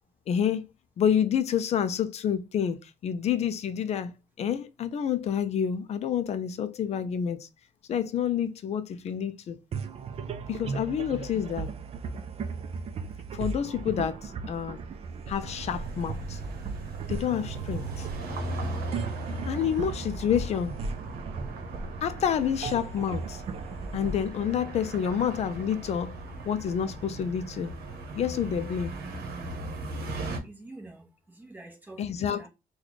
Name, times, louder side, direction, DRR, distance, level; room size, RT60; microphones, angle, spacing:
voice 1, 0.3-0.6 1.0-7.5 7.9-9.6 10.5-11.7 13.3-14.8 15.3-16.4 17.1-18.1 19.4-20.8 22.0-23.4 23.9-26.1 26.5-27.7 28.2-29.0 32.0-32.5, left 8 dB, 40° left, 0.4 m, -28 dB
sound 1, 9.7-25.4, right 4 dB, 40° right, 0.4 m, -37 dB
sound 2, 15.4-30.4, right 2 dB, 75° right, 0.9 m, -38 dB
voice 2, 30.2-32.5, right 2 dB, 10° right, 0.8 m, -47 dB
3.1 x 2.3 x 3.9 m
cardioid pair, 170°, 16 cm